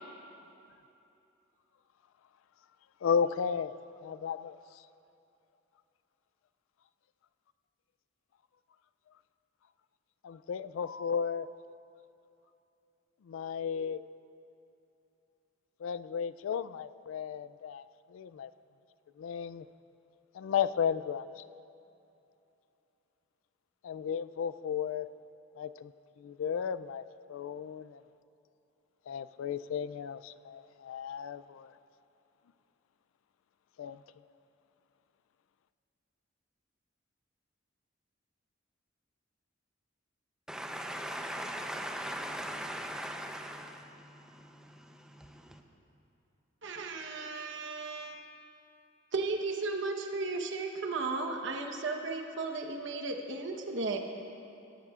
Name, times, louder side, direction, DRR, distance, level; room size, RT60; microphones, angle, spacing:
voice 1, 3.0-4.6 10.2-11.5 13.3-14.0 15.8-18.5 19.2-19.7 20.3-21.4 23.8-25.1 25.6-25.9 26.2-28.0 29.1-31.7 33.8-34.0, left 7 dB, 90° left, 0.3 m, -34 dB
voice 2, 40.5-43.8, equal, 5° right, 0.6 m, -38 dB
voice 3, 46.6-48.2 49.1-54.0, right 3 dB, 65° right, 1.1 m, -35 dB
17.0 x 13.0 x 2.4 m
head